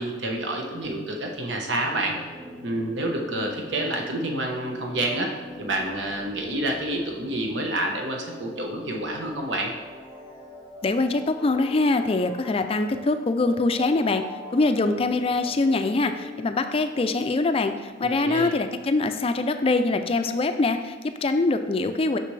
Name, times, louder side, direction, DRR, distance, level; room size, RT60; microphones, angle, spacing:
voice 1, 0.0-2.2 2.6-5.3 5.6-9.7 18.0-18.5, right 1 dB, 80° right, 1 dB, 1.0 m, -28 dB
sound 1, 1.7-17.9, left 1 dB, 25° right, 1.9 m, -43 dB
voice 2, 10.8-14.2 14.5-22.2, left 3 dB, 30° left, 8 dB, 0.4 m, -23 dB
6.6 x 5.9 x 3.2 m, 1.4 s
head